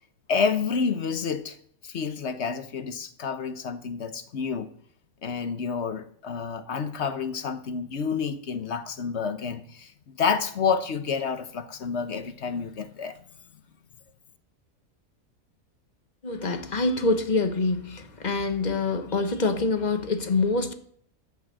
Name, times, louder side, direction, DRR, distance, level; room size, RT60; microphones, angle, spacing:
voice 1, 0.3-1.6 1.8-4.7 5.2-13.2, left 5 dB, 55° left, 1.2 m, -29 dB
voice 2, 16.2-20.7, left 3 dB, 35° left, 1.1 m, -25 dB
12.5 x 5.4 x 7.6 m
omnidirectional pair, 1.5 m